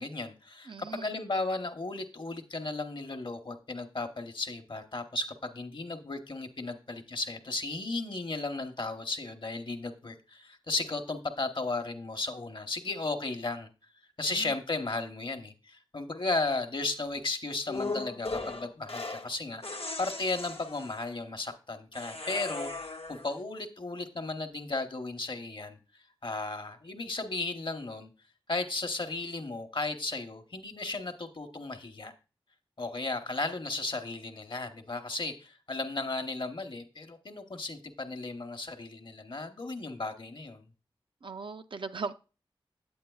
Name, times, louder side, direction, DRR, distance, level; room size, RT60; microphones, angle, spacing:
voice 1, 0.0-13.7 14.2-28.1 28.5-32.1 32.8-40.6, left 3 dB, 55° left, 0.8 m, -35 dB
voice 2, 0.7-1.1 14.3-14.6 41.2-42.1, right 4 dB, 60° right, 0.4 m, -39 dB
sound 1, 17.7-19.3 19.6-21.1 21.9-23.3, left 3 dB, 85° left, 0.8 m, -38 dB
8.6 x 8.4 x 2.3 m
wide cardioid pair, 75°, 10 cm